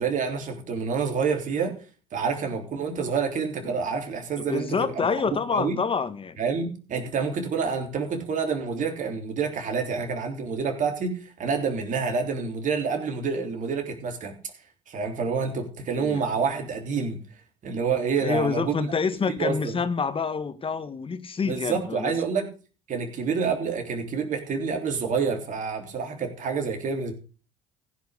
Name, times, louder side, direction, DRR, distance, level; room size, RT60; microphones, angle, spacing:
voice 1, 0.0-1.8 2.1-5.8 6.4-14.4 14.9-17.2 17.6-18.9 19.4-19.8 21.4-22.5 22.9-27.1, right 5 dB, 50° right, 3.5 m, -28 dB
voice 2, 4.5-6.4 15.9-16.2 18.2-22.1, left 5 dB, 35° left, 1.5 m, -27 dB
15.5 x 6.1 x 6.7 m
hypercardioid pair, 60°, 16 cm